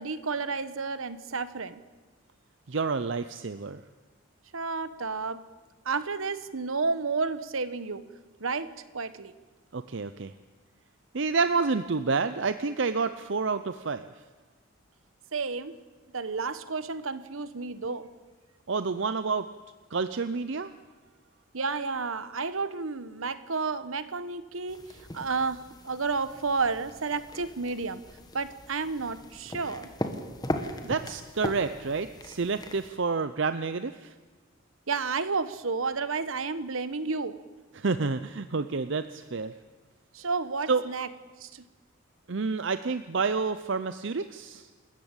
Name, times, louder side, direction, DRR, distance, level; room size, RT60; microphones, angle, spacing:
voice 1, 0.0-1.8 4.5-5.5 5.8-8.0 8.4-9.3 15.3-15.8 16.1-18.1 21.5-28.0 28.3-29.9 34.9-37.4 40.1-41.1 41.4-41.6, right 4 dB, 75° right, 14 dB, 1.1 m, -31 dB
voice 2, 2.7-3.8 9.7-10.3 11.1-14.0 18.7-19.5 19.9-20.7 30.8-34.1 37.7-39.5 40.7-40.8 42.3-44.7, right 4 dB, 55° right, 11 dB, 0.6 m, -29 dB
sound 1, 24.7-32.9, left 1 dB, 20° left, 1.6 m, -39 dB
28.0 x 13.5 x 8.9 m, 1.3 s
head